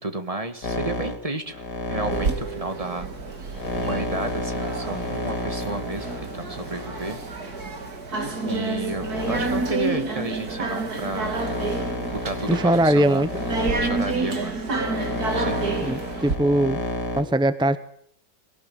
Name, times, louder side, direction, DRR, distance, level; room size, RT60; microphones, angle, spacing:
voice 1, 0.0-1.6 1.9-3.1 3.7-7.2 8.4-11.5 12.1-13.3 13.8-14.6 15.3-16.0, right 2 dB, 20° right, 8 dB, 1.8 m, -32 dB
sound 1, 0.6-8.0 8.6-17.2, left 1 dB, 85° left, 3.9 m, -31 dB
sound 2, 2.1-16.4, right 3 dB, 70° right, 3.1 m, -30 dB
voice 2, 12.5-13.3 15.8-16.8 17.1-17.8, right 1 dB, 5° right, 12 dB, 0.5 m, -20 dB
22.0 x 18.5 x 9.3 m, 0.65 s
omnidirectional pair, 1.7 m